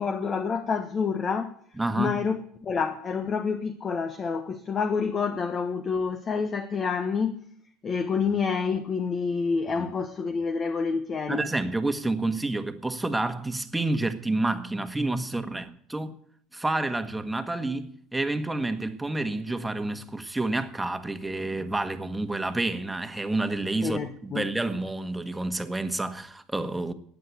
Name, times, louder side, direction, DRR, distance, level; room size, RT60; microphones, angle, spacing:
voice 1, 0.0-1.5 2.0-7.4 7.8-11.5 23.8-24.4, left 5 dB, 35° left, 1.3 m, -28 dB
voice 2, 1.8-2.2 9.8-9.9 11.3-16.2 16.5-26.9, right 2 dB, 10° right, 1.6 m, -29 dB
15.0 x 9.6 x 8.5 m
hypercardioid pair, 80°, 0 cm